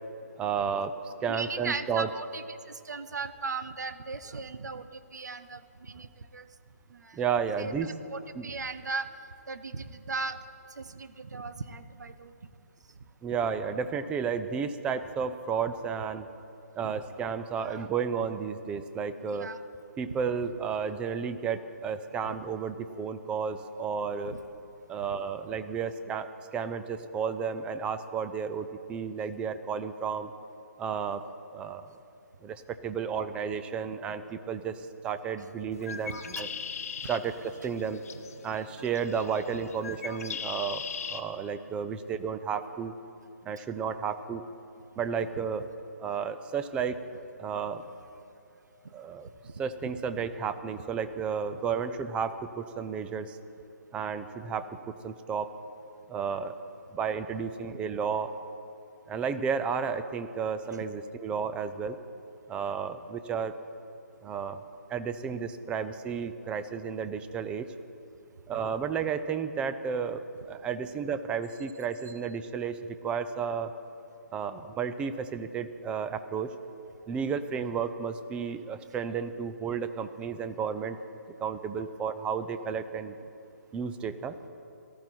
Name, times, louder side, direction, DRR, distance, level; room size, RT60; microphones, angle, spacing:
voice 1, 0.4-2.1 7.1-7.9 8.4-8.5 13.2-16.3 16.8-19.5 20.0-24.3 24.9-30.3 30.8-31.3 31.5-31.9 32.4-36.5 37.1-38.0 38.4-42.9 43.4-44.4 45.0-45.7 46.0-47.0 47.4-47.8 48.9-49.3 49.6-53.4 53.9-54.7 55.0-55.5 56.1-56.6 56.9-58.3 59.1-62.0 62.5-63.6 64.2-64.6 64.9-67.7 68.5-73.7 74.3-76.5 77.1-81.0 81.4-83.2 83.7-84.4, right 6 dB, 10° right, 11 dB, 0.5 m, -32 dB
voice 2, 1.3-6.5 6.9-7.2 7.6-9.1 9.5-10.4 10.8-12.3 16.8-17.0 17.6-17.8 19.3-19.7 24.2-24.4 36.4-36.5 43.6-43.7 48.8-48.9 49.4-49.5, right 4 dB, 80° right, 12 dB, 1.0 m, -38 dB
Bird, 35.7-41.2, left 6 dB, 60° left, 1.1 m, -40 dB
18.5 x 14.0 x 4.5 m, 2.6 s
hypercardioid pair, 145°, 9 cm